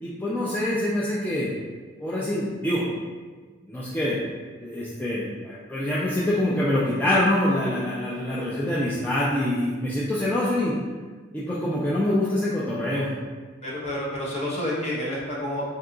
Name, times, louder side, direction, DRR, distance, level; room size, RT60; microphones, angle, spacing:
voice 1, 0.0-1.5 2.0-2.9 3.7-4.2 4.6-10.7 11.3-13.1, left 1 dB, 10° left, -8 dB, 0.3 m, -25 dB
voice 2, 13.6-15.7, left 1 dB, 35° left, -5 dB, 0.8 m, -29 dB
2.8 x 2.3 x 3.7 m, 1.4 s
head